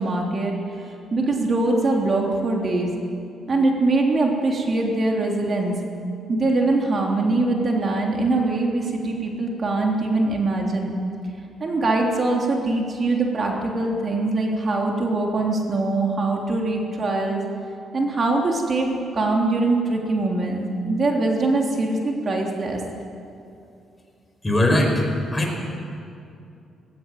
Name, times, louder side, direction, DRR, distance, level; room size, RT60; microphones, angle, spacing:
voice 1, 0.0-2.9 3.5-5.8 6.3-10.9 11.6-17.4 17.9-22.8, right 2 dB, 40° right, 0 dB, 3.4 m, -22 dB
voice 2, 24.4-25.1 25.3-25.6, left 1 dB, 15° left, 1 dB, 5.4 m, -20 dB
20.0 x 18.0 x 9.3 m, 2.6 s
cardioid pair, 90°, 0 cm